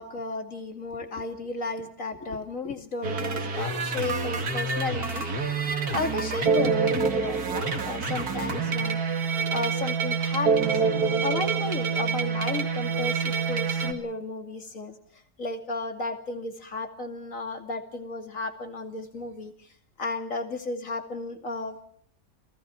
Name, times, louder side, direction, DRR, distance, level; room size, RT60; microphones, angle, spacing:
voice 1, 0.0-5.3 5.6-9.0 9.5-10.8 11.2-19.7 20.0-21.8, left 3 dB, 50° left, 6 dB, 2.9 m, -34 dB
sound 1, 3.0-13.9, right 5 dB, 65° right, 2.6 m, -27 dB
28.5 x 18.0 x 5.9 m, 0.64 s
omnidirectional pair, 1.8 m